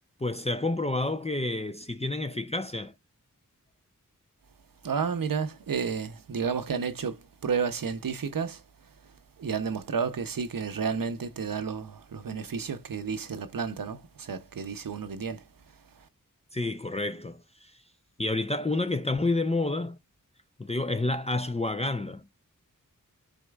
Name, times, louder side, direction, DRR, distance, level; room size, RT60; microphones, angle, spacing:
voice 1, 0.2-2.9 16.5-17.7 18.2-20.0 20.6-22.2, left 2 dB, 20° left, 0.5 m, -29 dB
voice 2, 4.8-8.6 9.0-15.4 15.9-16.1, right 6 dB, 85° right, 0.8 m, -31 dB
13.0 x 4.3 x 2.4 m
wide cardioid pair, 70°, 33 cm